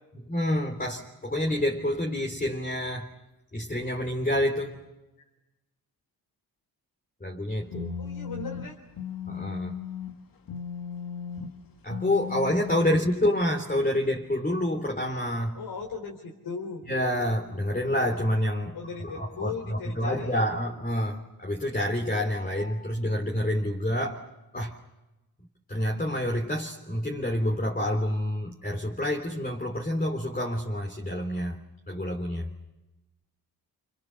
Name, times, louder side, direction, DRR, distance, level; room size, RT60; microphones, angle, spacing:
voice 1, 0.2-3.1 3.5-4.9 7.2-8.0 9.3-9.8 11.8-15.6 16.9-18.8 19.0-24.3 24.5-24.8 25.7-31.6 31.9-32.5, left 1 dB, 25° left, 3.4 m, -28 dB
sound 1, 7.5-13.2, left 8 dB, 60° left, 2.0 m, -37 dB
voice 2, 8.0-8.7 15.5-16.8 18.7-20.4, left 5 dB, 80° left, 3.9 m, -37 dB
30.0 x 28.5 x 6.9 m
cardioid pair, 80°, 38 cm